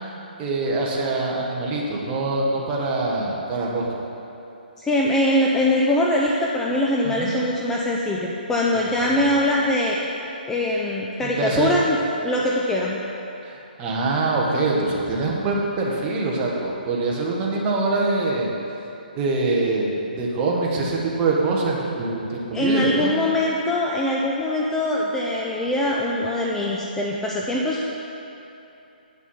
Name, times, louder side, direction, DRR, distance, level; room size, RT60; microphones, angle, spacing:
voice 1, 0.4-3.9 7.0-7.3 9.0-9.1 11.2-11.9 13.4-18.5 19.2-23.2, right 3 dB, 20° right, -3 dB, 1.3 m, -24 dB
voice 2, 4.8-10.0 10.5-12.0 12.2-13.0 22.5-27.9, left 1 dB, 10° left, -3 dB, 0.5 m, -22 dB
8.5 x 6.1 x 5.6 m, 2.9 s
hypercardioid pair, 145°, 5 cm